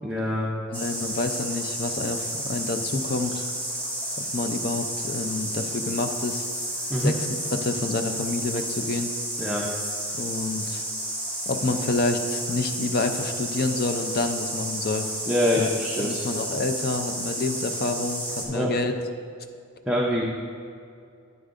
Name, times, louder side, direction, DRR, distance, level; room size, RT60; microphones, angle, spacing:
voice 1, 0.0-0.5 6.9-7.1 9.4-9.7 15.3-16.2 18.5-18.7 19.9-20.2, left 1 dB, 5° right, -4 dB, 0.6 m, -25 dB
voice 2, 0.7-3.4 4.3-6.4 7.0-7.1 7.5-9.1 10.2-10.8 11.5-15.1 15.6-18.9, left 3 dB, 50° left, 7 dB, 0.5 m, -28 dB
sound 1, 0.7-18.4, right 1 dB, 10° left, 1.5 m, -32 dB
9.8 x 9.1 x 2.6 m, 2.3 s
head